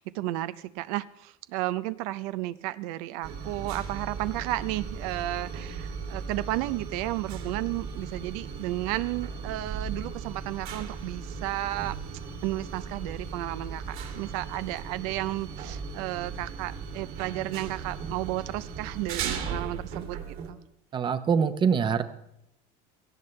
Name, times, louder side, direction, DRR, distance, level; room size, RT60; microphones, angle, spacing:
voice 1, 0.0-12.0 12.4-20.6, right 16 dB, 90° right, 14 dB, 0.6 m, -33 dB
sound 1, 3.2-20.5, right 5 dB, 55° right, 2.6 m, -37 dB
voice 2, 20.9-22.0, right 6 dB, 25° right, 11 dB, 0.8 m, -24 dB
17.5 x 15.0 x 3.3 m, 0.81 s
cardioid pair, 150°, 18 cm